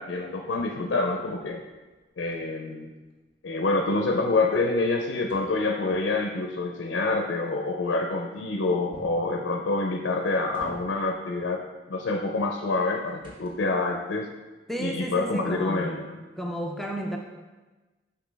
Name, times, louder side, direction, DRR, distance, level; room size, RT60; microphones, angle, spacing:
voice 1, 0.0-1.6 2.2-2.9 3.4-14.3 14.8-16.0, left 3 dB, 75° left, 3 dB, 0.5 m, -27 dB
sound 1, 1.2-3.4 3.8-6.1 8.9-9.4 10.0-11.2 12.5-13.9, equal, 25° right, 1.3 m, -51 dB
voice 2, 14.7-16.0 16.4-17.2, equal, ahead, 0 dB, 0.4 m, -32 dB
5.7 x 5.1 x 3.3 m, 1.2 s
head